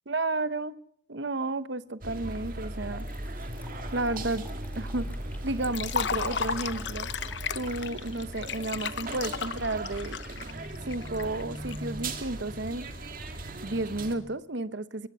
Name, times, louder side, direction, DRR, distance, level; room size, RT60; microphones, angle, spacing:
voice 1, 0.1-0.8 1.1-3.1 3.9-4.5 4.7-5.1 5.4-7.1 7.5-10.2 10.8-12.8 13.6-15.1, right 2 dB, 65° right, 1.0 m, -32 dB
sound 1, 2.0-14.2, right 1 dB, 45° right, 2.3 m, -38 dB
sound 2, 2.3-2.4 3.0-9.3, left 1 dB, 10° left, 2.3 m, -52 dB
Liquid, 5.6-11.8, left 6 dB, 70° left, 0.9 m, -34 dB
23.0 x 20.0 x 5.6 m
head